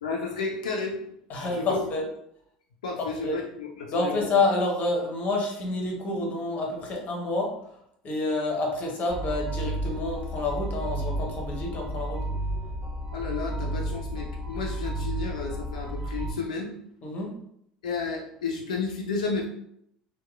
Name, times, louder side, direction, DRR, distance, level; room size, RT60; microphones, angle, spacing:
voice 1, 0.0-1.0 1.3-1.9 2.8-4.3 13.1-16.7 17.8-19.5, left 4 dB, 75° left, 0 dB, 0.4 m, -32 dB
voice 2, 1.3-2.1 3.0-3.4 3.9-7.5 8.0-12.2 17.0-17.3, left 2 dB, 40° left, 0 dB, 0.8 m, -28 dB
sound 1, 9.1-16.3, right 1 dB, 15° right, 1.4 m, -32 dB
2.8 x 2.2 x 2.3 m, 0.73 s
hypercardioid pair, 75°, 4 cm